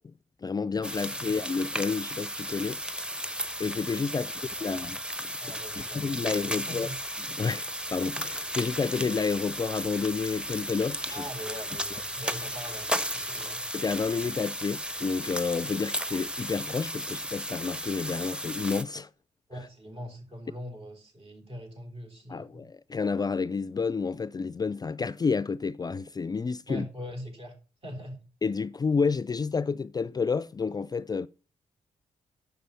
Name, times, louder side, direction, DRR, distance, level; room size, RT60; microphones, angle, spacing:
voice 1, 0.4-4.3 4.6-5.0 5.9-6.9 7.4-11.2 13.7-19.1 22.3-26.9 28.4-31.3, left 5 dB, 30° left, 0.3 m, -30 dB
sound 1, 0.8-18.8, equal, 5° right, 0.9 m, -35 dB
voice 2, 1.2-1.6 4.1-4.9 5.4-7.0 11.1-13.9 19.5-22.6 26.7-27.5 27.8-28.3, equal, 45° right, 3.6 m, -42 dB
sound 2, 5.7-13.7, right 2 dB, 70° right, 5.3 m, -55 dB
6.9 x 5.5 x 6.8 m
supercardioid pair, 50°, 14 cm